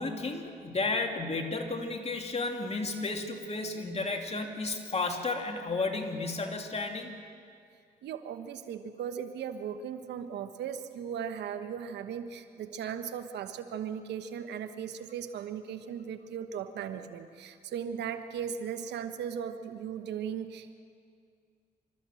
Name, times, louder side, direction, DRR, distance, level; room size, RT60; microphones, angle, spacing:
voice 1, 0.0-7.1, left 3 dB, 35° left, 4 dB, 2.7 m, -33 dB
voice 2, 8.0-20.7, right 8 dB, 85° right, 9 dB, 1.1 m, -37 dB
26.5 x 13.5 x 7.7 m, 2.3 s
supercardioid pair, 65°, 17 cm